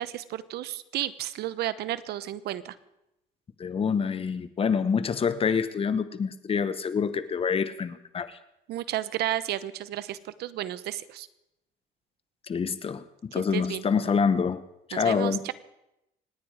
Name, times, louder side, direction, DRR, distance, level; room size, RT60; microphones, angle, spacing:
voice 1, 0.0-2.7 8.7-11.3 13.5-13.8 14.9-15.5, right 13 dB, 75° right, 14 dB, 1.0 m, -32 dB
voice 2, 3.6-8.4 12.5-14.6 14.9-15.5, left 6 dB, 35° left, 13 dB, 1.2 m, -26 dB
27.5 x 9.8 x 4.9 m, 0.85 s
cardioid pair, 110°, 17 cm